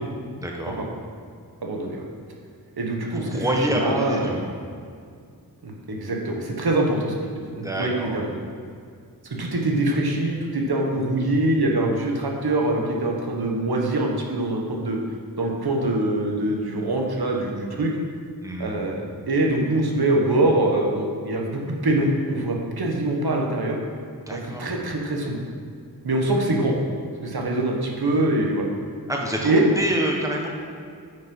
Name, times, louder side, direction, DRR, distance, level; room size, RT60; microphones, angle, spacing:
voice 1, 0.4-0.7 3.1-4.5 7.5-8.2 18.4-18.8 24.3-24.7 29.1-30.5, right 1 dB, 10° right, -1 dB, 1.4 m, -27 dB
voice 2, 1.6-2.0 2.8-3.5 3.7-4.5 5.6-7.1 7.6-8.3 9.3-15.0 15.4-17.9 18.6-23.8 24.3-25.4 26.0-26.7 27.2-28.6 29.4-29.6, right 2 dB, 75° right, 0 dB, 1.4 m, -24 dB
9.2 x 6.6 x 5.4 m, 2.2 s
wide cardioid pair, 95°, 38 cm